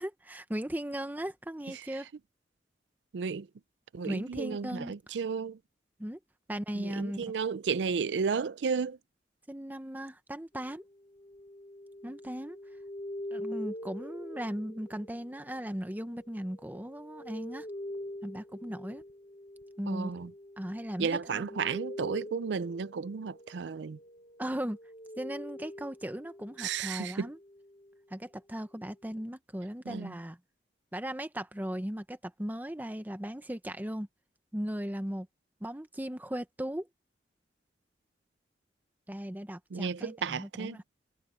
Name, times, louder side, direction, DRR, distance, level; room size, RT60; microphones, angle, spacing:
voice 1, 0.0-2.1 4.0-4.9 6.0-6.2 6.5-7.2 9.5-10.8 12.0-12.6 13.3-17.7 18.2-19.0 19.8-20.3 20.6-21.5 24.4-24.8 25.2-27.4 28.1-30.4 30.9-34.1 34.5-35.3 35.6-36.9 39.1-40.8, equal, 10° right, 0.9 m, -37 dB
voice 2, 3.1-3.5 3.9-5.6 6.8-9.0 19.9-20.3 21.0-24.0 26.6-27.3 29.9-30.1 39.7-40.8, right 5 dB, 85° right, 0.4 m, -33 dB
sound 1, 10.5-26.8 27.2-28.0, left 1 dB, 35° left, 1.1 m, -45 dB
head